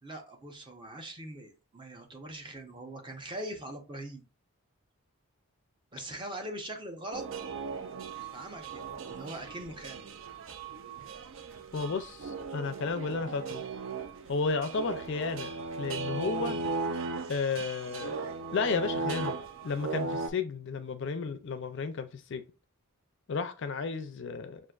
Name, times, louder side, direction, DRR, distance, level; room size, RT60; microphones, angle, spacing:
voice 1, 0.0-4.2 5.9-7.2 8.3-10.0 16.1-16.6, right 1 dB, 20° right, 0.7 m, -42 dB
sound 1, 7.1-20.3, right 4 dB, 55° right, 0.4 m, -37 dB
voice 2, 11.7-13.6 14.3-16.6 17.3-18.1 18.5-22.4 23.3-24.6, left 4 dB, 55° left, 0.4 m, -33 dB
6.1 x 2.5 x 2.3 m
head